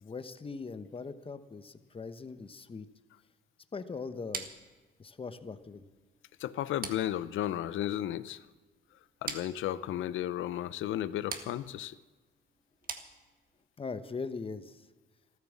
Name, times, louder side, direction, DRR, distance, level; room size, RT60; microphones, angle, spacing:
voice 1, 0.0-2.9 3.7-4.5 5.0-5.8 13.8-14.8, left 4 dB, 25° left, 11 dB, 1.1 m, -40 dB
sound 1, 4.3-13.7, right 5 dB, 45° right, 1.8 m, -46 dB
voice 2, 6.4-8.4 9.2-11.9, left 12 dB, 80° left, 16 dB, 0.7 m, -34 dB
14.5 x 13.0 x 7.3 m, 1.3 s
cardioid pair, 90°, 20 cm